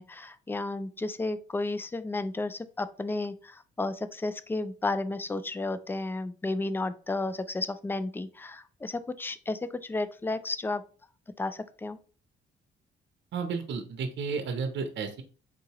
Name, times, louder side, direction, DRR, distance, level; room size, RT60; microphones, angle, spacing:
voice 1, 0.0-10.8 11.4-12.0, left 2 dB, 10° left, 13 dB, 0.3 m, -32 dB
voice 2, 13.3-15.2, right 5 dB, 65° right, 7 dB, 0.7 m, -32 dB
3.8 x 2.7 x 2.9 m, 0.38 s
cardioid pair, 90°, 20 cm